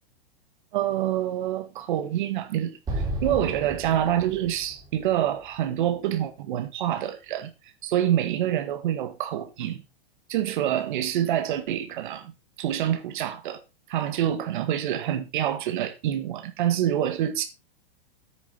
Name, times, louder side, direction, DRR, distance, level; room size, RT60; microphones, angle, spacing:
voice 1, 0.7-7.5 7.8-9.8 10.3-12.3 12.6-13.6 13.9-17.4, right 11 dB, 55° right, 1.7 m, -26 dB
Explosion, 2.9-6.1, right 1 dB, 15° right, 3.5 m, -34 dB
9.6 x 6.7 x 4.4 m
supercardioid pair, 165°, 29 cm